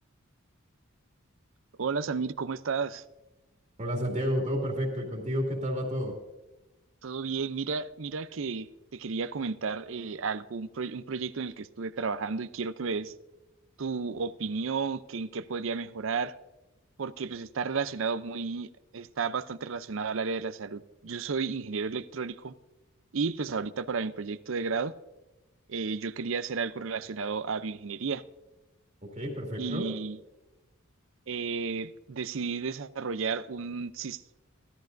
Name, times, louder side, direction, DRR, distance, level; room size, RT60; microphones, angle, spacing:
voice 1, 1.8-3.0 7.0-13.1 13.8-16.3 17.0-22.5 23.1-24.9 25.7-28.2 29.6-30.2 31.3-34.4, right 5 dB, 65° right, 0.6 m, -33 dB
voice 2, 3.8-6.1 29.1-29.9, equal, 35° right, 2.3 m, -30 dB
16.5 x 13.0 x 2.6 m
head